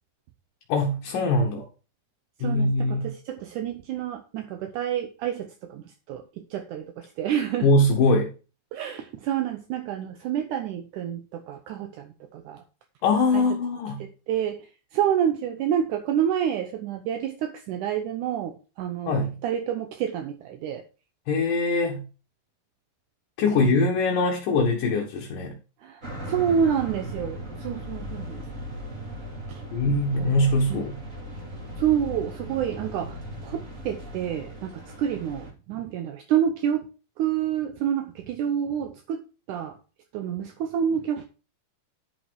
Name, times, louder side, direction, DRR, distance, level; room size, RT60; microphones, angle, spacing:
voice 1, 0.7-1.6 2.4-3.1 7.6-8.3 13.0-14.0 19.1-19.4 21.3-22.0 23.4-25.5 29.7-31.0, left 2 dB, 65° left, 0 dB, 2.9 m, -22 dB
voice 2, 2.4-7.7 8.7-12.6 13.3-13.5 14.0-20.8 23.6-23.9 25.8-28.4 29.5-30.8 31.8-36.9 37.2-39.2 39.5-39.8 40.1-41.3, right 9 dB, 75° right, 6 dB, 1.9 m, -28 dB
sound 1, 26.0-35.5, equal, 25° right, 2.2 m, -38 dB
11.0 x 5.9 x 4.7 m, 0.33 s
omnidirectional pair, 4.5 m